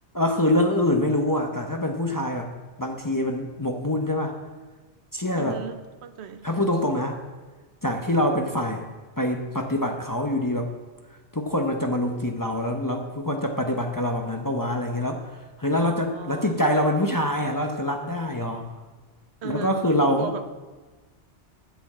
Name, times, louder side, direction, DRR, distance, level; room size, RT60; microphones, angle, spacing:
voice 1, 0.1-2.5 2.8-4.4 5.1-5.6 6.4-7.2 7.8-8.9 9.2-10.7 11.3-15.3 15.6-18.7 19.4-20.3, left 1 dB, 20° left, 2 dB, 0.7 m, -25 dB
voice 2, 5.4-6.5 15.8-16.5 19.4-20.6, right 7 dB, 70° right, 10 dB, 0.9 m, -36 dB
9.1 x 6.9 x 7.4 m, 1.3 s
omnidirectional pair, 1.2 m